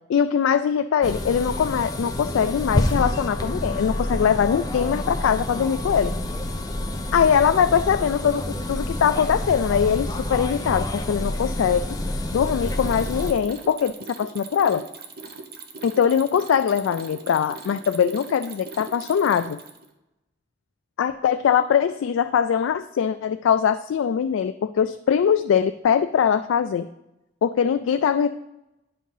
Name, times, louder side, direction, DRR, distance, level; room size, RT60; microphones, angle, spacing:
voice 1, 0.1-6.1 7.1-12.0 12.3-13.9 14.2-14.8 15.8-19.6 21.0-26.9 27.4-28.3, left 7 dB, 90° left, 10 dB, 0.3 m, -22 dB
sound 1, 1.0-13.3, left 1 dB, 20° left, 0.6 m, -28 dB
Mechanisms, 12.5-19.9, right 4 dB, 50° right, 0.8 m, -40 dB
9.8 x 3.7 x 5.4 m, 0.91 s
head